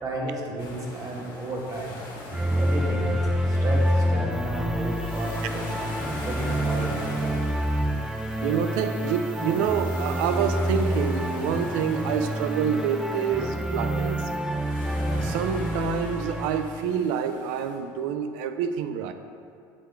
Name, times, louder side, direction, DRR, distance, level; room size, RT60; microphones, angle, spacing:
voice 1, 0.0-2.0 2.5-5.7 6.2-7.5, right 2 dB, 35° right, -3 dB, 1.6 m, -33 dB
sound 1, 0.6-17.8, left 2 dB, 50° left, 1.8 m, -42 dB
sound 2, 2.3-16.8, equal, 5° right, 0.4 m, -27 dB
sound 3, 4.3-14.4, left 6 dB, 85° left, 1.3 m, -53 dB
voice 2, 8.4-14.3 15.2-19.1, right 7 dB, 75° right, 9 dB, 0.5 m, -27 dB
8.4 x 3.8 x 4.5 m, 2.3 s
hypercardioid pair, 80°, 11 cm